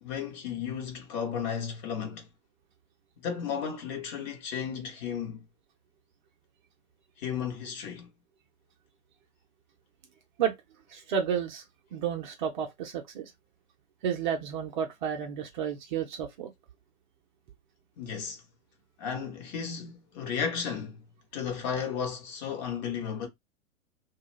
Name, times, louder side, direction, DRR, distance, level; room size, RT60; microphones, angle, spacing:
voice 1, 0.0-2.3 3.2-5.4 7.2-8.1 18.0-18.4 19.0-21.0 21.3-23.3, left 7 dB, 30° left, 0.9 m, -34 dB
voice 2, 10.9-11.6 11.9-13.3 14.0-16.5, right 8 dB, 35° right, 0.6 m, -31 dB
2.3 x 2.3 x 3.0 m
figure-of-eight pair, 110°, 42 cm